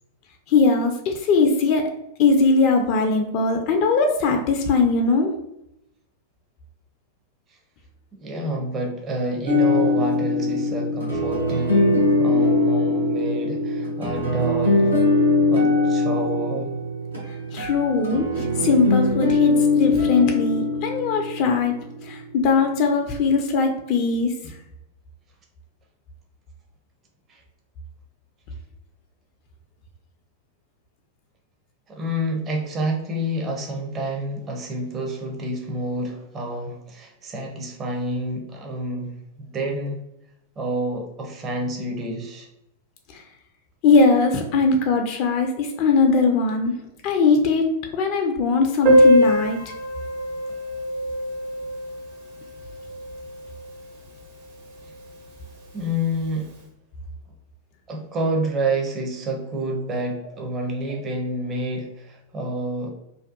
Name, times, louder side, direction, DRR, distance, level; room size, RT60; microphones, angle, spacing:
voice 1, 0.5-1.9 2.2-5.3 17.5-21.7 22.0-24.6 43.1-43.2 43.8-46.7 47.0-49.6, left 4 dB, 45° left, 4 dB, 0.3 m, -20 dB
voice 2, 8.2-14.9 15.5-16.7 27.3-27.4 31.9-40.0 40.6-42.5 55.7-56.5 57.9-62.9, right 1 dB, 30° right, 1 dB, 0.6 m, -28 dB
sound 1, 9.5-21.9, left 2 dB, 85° right, 0.8 m, -21 dB
Piano, 48.8-54.2 54.5-54.6 54.8-54.9 55.3-55.4 56.1-56.3, equal, 50° right, 0.9 m, -22 dB
2.6 x 2.2 x 2.4 m, 0.84 s
figure-of-eight pair, 95°, 0 cm